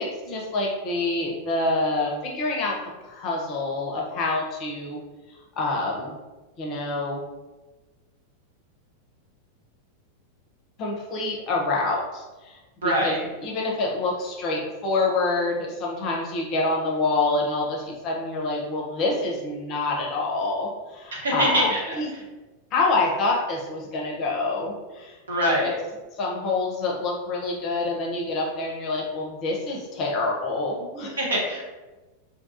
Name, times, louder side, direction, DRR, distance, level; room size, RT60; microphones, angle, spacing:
voice 1, 0.0-2.8 3.0-5.0 5.6-6.2 6.6-7.2 10.8-22.1 22.7-25.7 26.1-31.2, left 2 dB, 35° left, -2 dB, 0.6 m, -27 dB
voice 2, 12.8-13.2 21.1-21.9 25.3-25.7 31.2-31.6, equal, 70° right, -3 dB, 0.7 m, -24 dB
2.6 x 2.3 x 2.5 m, 1.2 s
figure-of-eight pair, 90°, 0 cm